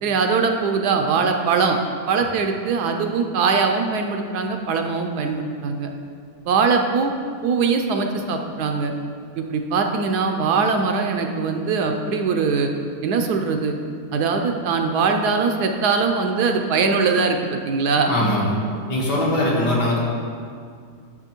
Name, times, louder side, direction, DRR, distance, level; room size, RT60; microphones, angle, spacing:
voice 1, 0.0-1.8 2.1-5.9 6.5-7.1 7.4-8.9 9.4-12.7 13.0-13.7 14.1-18.4, right 5 dB, 75° right, 4 dB, 1.1 m, -21 dB
voice 2, 18.1-18.6 18.9-20.0, left 1 dB, 70° left, -4 dB, 2.0 m, -21 dB
10.5 x 6.3 x 2.9 m, 2.2 s
omnidirectional pair, 1.9 m